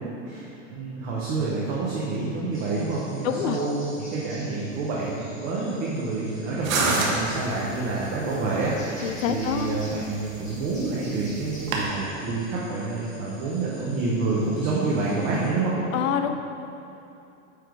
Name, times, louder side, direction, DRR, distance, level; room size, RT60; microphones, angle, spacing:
voice 1, 0.0-15.7, right 3 dB, 25° right, -6 dB, 0.5 m, -28 dB
sound 1, 2.5-15.5, equal, 10° left, 1.4 m, -48 dB
voice 2, 3.2-3.6 9.0-9.7 15.9-16.3, left 8 dB, 80° left, 7 dB, 0.6 m, -26 dB
sound 2, 6.6-11.9, right 3 dB, 90° right, 1.2 m, -30 dB
7.8 x 3.4 x 4.6 m, 2.8 s
supercardioid pair, 170°, 39 cm